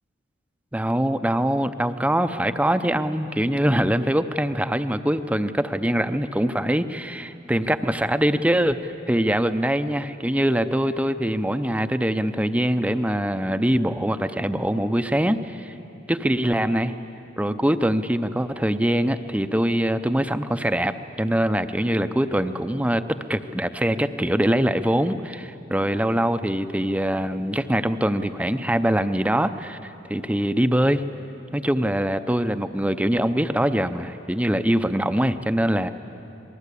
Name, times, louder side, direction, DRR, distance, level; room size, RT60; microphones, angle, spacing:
voice 1, 0.7-15.7 16.1-16.9 17.4-31.0 31.5-35.9, right 1 dB, 5° right, 10 dB, 0.6 m, -23 dB
26.5 x 20.0 x 8.4 m, 3.0 s
head